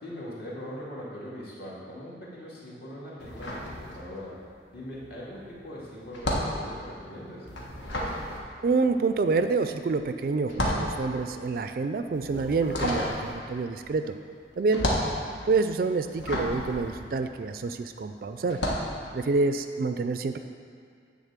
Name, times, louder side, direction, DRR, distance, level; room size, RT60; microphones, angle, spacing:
voice 1, 0.0-4.3 4.7-7.5 14.7-14.8, equal, 55° left, -7 dB, 2.3 m, -41 dB
sound 1, 3.2-4.4 4.7-17.9 18.4-19.0, left 1 dB, 85° left, 1.4 m, -32 dB
voice 2, 8.6-14.0 14.6-14.9 15.4-18.6 19.1-20.4, right 4 dB, 50° right, 9 dB, 0.3 m, -27 dB
10.0 x 3.8 x 7.3 m, 2.3 s
head